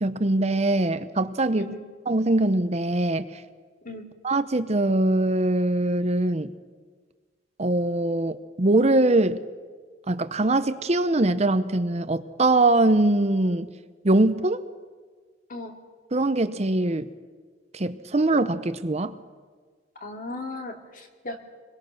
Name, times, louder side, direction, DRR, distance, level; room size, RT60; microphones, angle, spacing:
voice 1, 0.0-1.7 2.1-3.4 4.2-6.5 7.6-9.4 10.1-13.7 14.0-14.6 16.1-17.1 17.7-19.2, right 2 dB, 35° right, 11 dB, 0.8 m, -22 dB
voice 2, 20.0-21.4, left 2 dB, 50° left, 3 dB, 2.6 m, -36 dB
26.5 x 22.0 x 6.5 m, 1.5 s
head